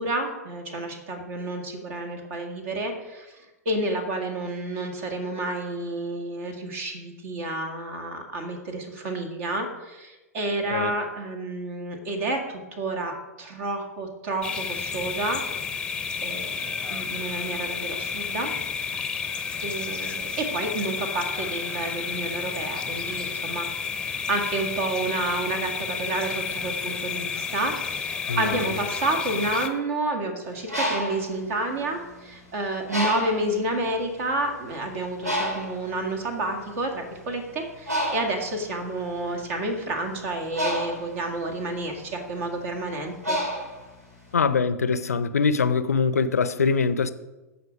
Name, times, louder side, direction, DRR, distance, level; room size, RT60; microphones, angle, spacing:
voice 1, 0.0-15.4 16.2-18.5 19.6-43.4, right 2 dB, 50° right, 1.9 m, -30 dB
sound 1, 14.4-29.7, left 5 dB, 10° left, 0.8 m, -31 dB
voice 2, 28.3-28.6 44.3-47.1, left 5 dB, 70° left, 0.6 m, -23 dB
Bird, 30.5-32.3 32.9-33.6 34.2-34.4 34.6-44.4, equal, 75° right, 3.5 m, -31 dB
15.5 x 5.6 x 5.1 m
figure-of-eight pair, 100°, 9 cm